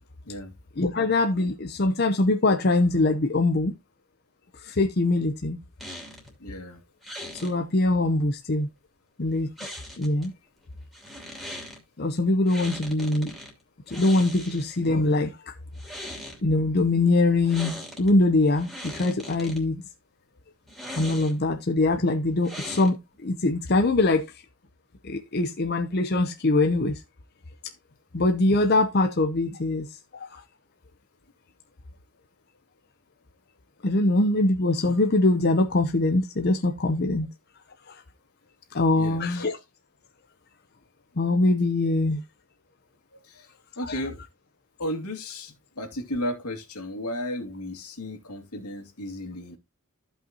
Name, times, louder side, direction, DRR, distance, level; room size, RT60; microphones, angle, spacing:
voice 1, 0.8-3.7 4.6-5.6 7.4-8.7 9.2-9.5 10.0-10.3 12.0-13.3 13.9-15.3 16.4-19.7 21.0-23.0 23.2-24.3 25.0-27.0 28.1-29.9 30.1-30.4 33.8-37.3 37.9-38.0 38.7-39.6 41.2-42.2 43.8-43.9, left 2 dB, 45° left, 0.7 m, -23 dB
sound 1, 5.8-6.3 7.0-7.5 9.6-10.3 10.9-11.8 12.5-13.5 13.9-14.9 15.7-16.4 17.5-18.1 18.5-19.6 20.7-21.5 22.4-23.2, equal, ahead, 2.7 m, -39 dB
voice 2, 6.4-6.8 38.9-39.4 43.3-43.5 43.8-44.2 44.8-49.6, left 1 dB, 85° left, 2.4 m, -34 dB
14.5 x 5.6 x 2.9 m
head